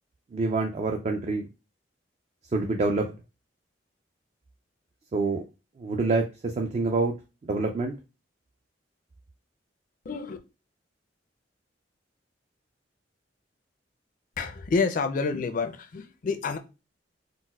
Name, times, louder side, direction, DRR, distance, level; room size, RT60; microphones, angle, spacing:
voice 1, 0.3-1.5 2.5-3.1 5.1-5.4 5.8-7.1 7.4-7.9, right 3 dB, 35° right, 0.3 m, -26 dB
voice 2, 10.1-10.4 14.4-16.6, left 4 dB, 45° left, 0.4 m, -28 dB
4.0 x 2.1 x 2.3 m
head